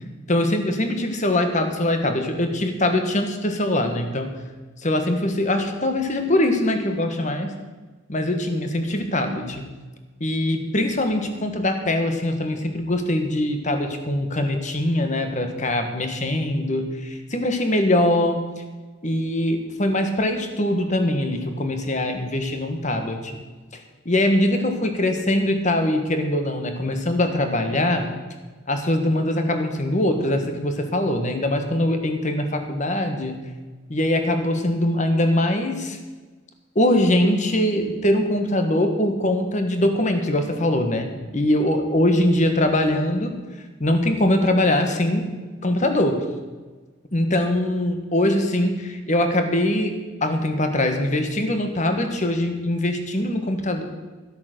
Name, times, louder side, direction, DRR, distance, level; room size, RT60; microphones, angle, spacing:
voice 1, 0.3-4.3 4.8-7.5 8.1-9.7 10.2-18.4 19.0-23.3 23.7-28.1 28.7-33.4 33.9-36.0 36.7-43.4 43.8-45.3 45.6-46.2 47.1-53.8, left 1 dB, 40° left, 6 dB, 1.4 m, -22 dB
13.5 x 8.3 x 6.7 m, 1.3 s
head